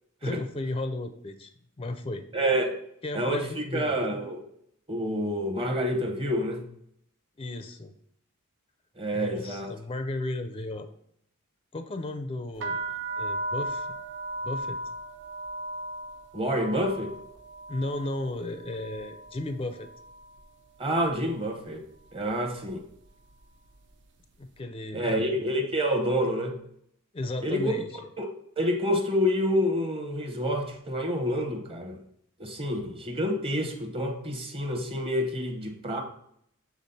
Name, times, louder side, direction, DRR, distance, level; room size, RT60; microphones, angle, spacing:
voice 1, 0.2-1.5 1.8-2.2 3.0-4.0 7.4-7.9 9.1-10.9 11.7-12.8 13.2-14.0 14.4-14.8 17.7-19.9 24.4-25.3 27.1-27.9, left 2 dB, 25° left, 8 dB, 0.4 m, -34 dB
voice 2, 2.3-2.7 3.1-4.4 4.9-6.7 9.0-9.7 16.3-17.1 20.8-21.8 22.1-22.8 24.9-26.6 27.4-27.7 28.2-28.3 28.6-32.0 32.4-36.0, equal, 25° right, 3 dB, 1.0 m, -28 dB
sound 1, 12.5-20.5 20.7-21.4 22.0-22.3 22.6-24.0, right 1 dB, 55° right, 0.7 m, -37 dB
7.2 x 4.1 x 4.0 m, 0.71 s
head